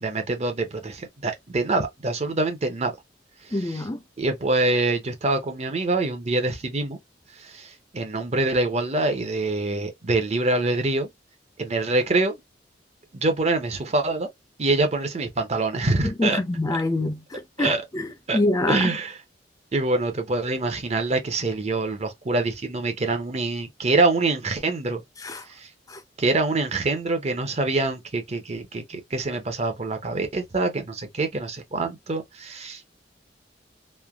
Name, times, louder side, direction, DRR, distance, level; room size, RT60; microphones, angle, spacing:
voice 1, 0.0-2.9 3.4-3.8 4.2-7.0 7.4-11.1 11.6-12.4 13.1-14.3 14.6-16.4 17.6-17.8 18.3-18.4 18.7-19.2 19.7-25.0 25.5-25.7 26.2-33.0, right 2 dB, 40° right, 0.7 m, -25 dB
voice 2, 3.5-4.0 16.0-18.8 25.2-25.4 25.9-26.0, left 2 dB, 20° left, 0.4 m, -26 dB
3.2 x 2.2 x 2.3 m
head